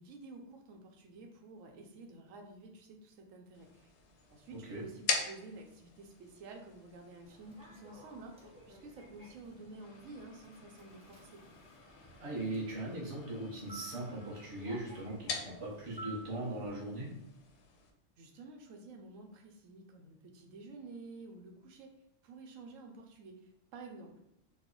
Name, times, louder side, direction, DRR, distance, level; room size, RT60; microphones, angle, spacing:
voice 1, 0.0-3.9 4.3-11.4 18.2-21.9 22.2-24.2, right 3 dB, 85° right, 2 dB, 1.0 m, -51 dB
sound 1, 3.5-17.9, left 5 dB, 70° left, 0.8 m, -44 dB
voice 2, 4.5-4.9 12.2-17.1, right 1 dB, 30° right, -3 dB, 0.7 m, -39 dB
Human voice / Subway metro underground, 7.2-16.7, right 2 dB, 10° right, 0.4 m, -54 dB
3.2 x 2.1 x 3.7 m, 0.81 s
omnidirectional pair, 1.3 m